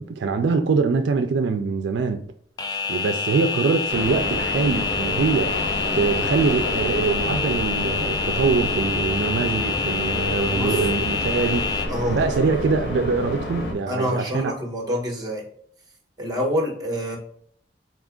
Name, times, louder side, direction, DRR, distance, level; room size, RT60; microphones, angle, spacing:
voice 1, 0.0-2.3 2.9-11.8 12.1-14.5, right 4 dB, 75° right, 0.4 m, -23 dB
sound 1, 2.6-11.9, left 5 dB, 20° left, 0.4 m, -27 dB
sound 2, 3.9-13.7, left 1 dB, 80° left, 1.3 m, -29 dB
voice 2, 10.5-10.8 11.9-12.2 13.9-15.4 16.2-17.2, equal, 20° right, 1.1 m, -26 dB
4.2 x 2.4 x 3.6 m
head